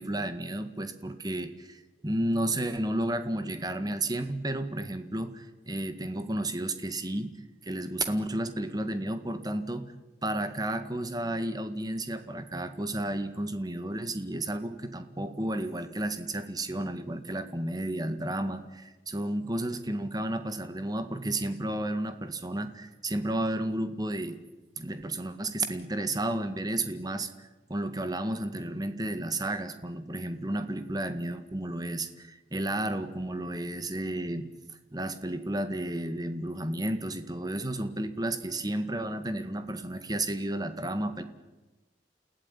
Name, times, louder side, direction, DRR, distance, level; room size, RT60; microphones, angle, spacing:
voice 1, 0.0-7.3 7.6-9.9 10.2-24.4 24.8-34.5 34.9-41.2, right 1 dB, 20° right, 9 dB, 1.8 m, -32 dB
29.0 x 16.5 x 9.9 m, 1.1 s
head